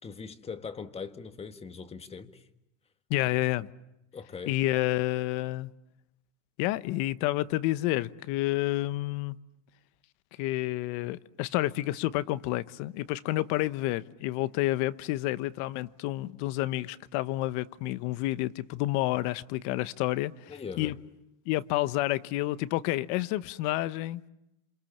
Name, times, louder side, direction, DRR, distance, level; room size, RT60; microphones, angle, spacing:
voice 1, 0.0-2.4 4.1-4.6 20.5-20.9, left 5 dB, 15° left, 1.8 m, -41 dB
voice 2, 3.1-3.7 4.5-5.7 6.6-9.3 10.4-20.9 21.5-24.2, left 17 dB, 50° left, 1.1 m, -29 dB
28.0 x 27.0 x 7.3 m
supercardioid pair, 135°, 37 cm